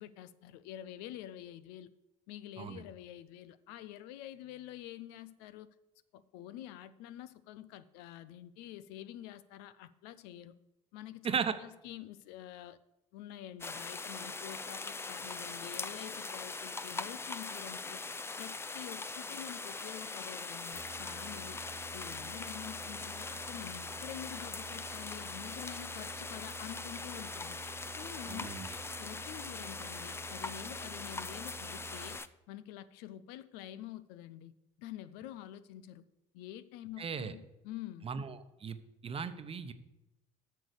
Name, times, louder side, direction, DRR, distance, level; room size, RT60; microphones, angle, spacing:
voice 1, 0.0-1.9 2.3-5.7 6.1-10.5 10.9-12.8 13.1-18.0 18.4-21.6 21.9-27.6 28.0-28.6 29.0-32.2 32.5-34.5 34.8-36.0 36.3-38.1, left 12 dB, 75° left, 0.5 m, -47 dB
voice 2, 11.2-11.5 28.3-28.7 37.0-37.3 38.0-38.8 39.0-39.7, right 6 dB, 35° right, 0.9 m, -36 dB
sound 1, 13.6-32.3, left 3 dB, 15° left, 0.5 m, -41 dB
sound 2, 20.7-32.2, right 8 dB, 75° right, 1.1 m, -51 dB
9.2 x 6.4 x 6.7 m
supercardioid pair, 75°, 16 cm